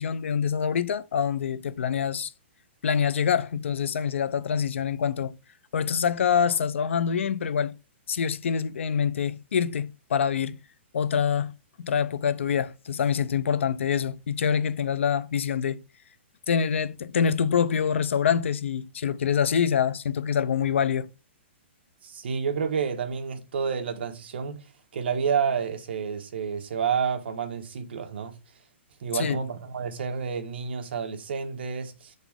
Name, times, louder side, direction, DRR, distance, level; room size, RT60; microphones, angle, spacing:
voice 1, 0.0-2.3 2.8-5.4 5.7-7.8 8.1-10.6 10.9-15.8 16.5-21.1 29.1-29.4, left 7 dB, 75° left, 0.5 m, -25 dB
voice 2, 22.0-24.7 24.9-28.4 29.0-32.1, right 6 dB, 55° right, 1.1 m, -29 dB
7.1 x 4.0 x 3.5 m
hypercardioid pair, 175°, 7 cm